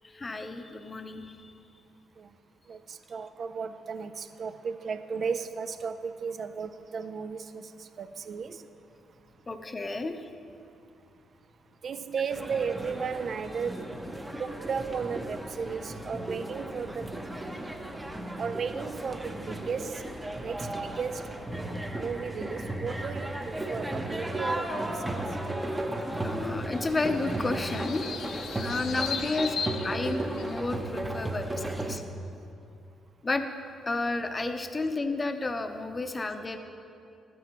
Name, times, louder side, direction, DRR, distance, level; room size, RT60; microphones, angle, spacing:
voice 1, 0.1-1.5 9.5-10.3 26.2-28.1 28.6-32.0 33.2-33.4 33.9-36.6, left 3 dB, 25° left, 7 dB, 0.7 m, -32 dB
voice 2, 2.7-8.7 11.8-13.9 14.4-17.2 18.4-20.0 20.4-21.3 21.9-25.2, right 6 dB, 50° right, 11 dB, 0.4 m, -35 dB
sound 1, 12.3-32.0, right 1 dB, 15° right, 0.8 m, -35 dB
sound 2, 26.7-30.7, left 6 dB, 65° left, 0.6 m, -37 dB
12.5 x 9.2 x 2.9 m, 2.6 s
cardioid pair, 90°, 0 cm